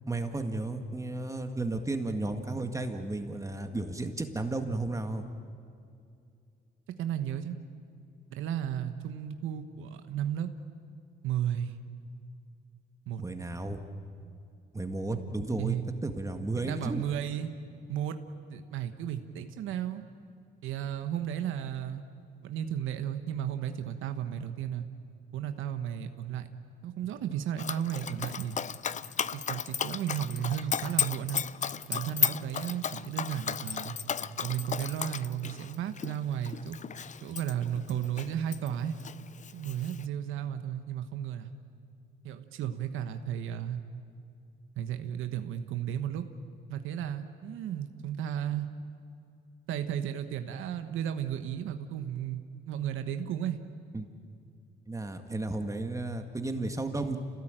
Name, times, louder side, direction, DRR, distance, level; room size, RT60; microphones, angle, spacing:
voice 1, 0.1-5.3 13.2-13.8 14.7-17.0 53.9-54.1 54.9-57.2, right 2 dB, 15° right, 5 dB, 1.9 m, -33 dB
voice 2, 7.0-7.6 8.3-10.5 11.2-11.8 13.1-13.2 15.6-15.8 16.6-17.5 17.9-18.2 18.5-20.0 20.6-22.0 22.4-24.9 25.3-26.5 26.8-28.6 29.3-31.4 31.9-33.9 34.4-36.8 37.2-38.9 39.5-41.5 42.2-43.8 44.8-46.2 46.7-48.7 49.7-53.6, right 10 dB, 85° right, 8 dB, 1.3 m, -34 dB
Dog, 27.6-38.7 39.0-40.0, left 7 dB, 40° left, 0.6 m, -34 dB
27.5 x 18.0 x 9.1 m, 2.5 s
cardioid pair, 90°, 20 cm